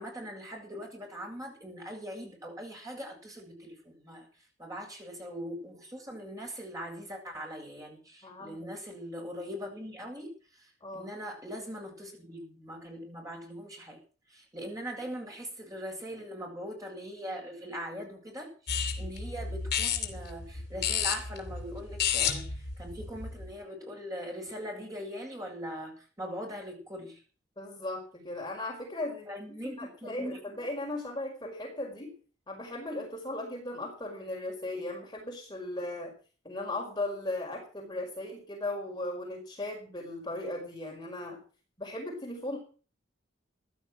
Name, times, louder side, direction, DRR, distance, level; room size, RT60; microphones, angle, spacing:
voice 1, 0.0-4.3 4.6-10.3 10.9-14.0 14.3-18.5 19.0-22.4 22.8-27.2 29.3-30.4, equal, 20° right, 0 dB, 7.8 m, -41 dB
voice 2, 8.2-8.7 10.8-11.1 27.6-32.1 32.5-36.1 36.4-41.4 41.8-42.6, left 2 dB, 20° left, 0 dB, 5.0 m, -37 dB
sound 1, 18.7-23.5, left 7 dB, 55° left, 3.4 m, -32 dB
16.0 x 12.0 x 6.2 m, 0.38 s
head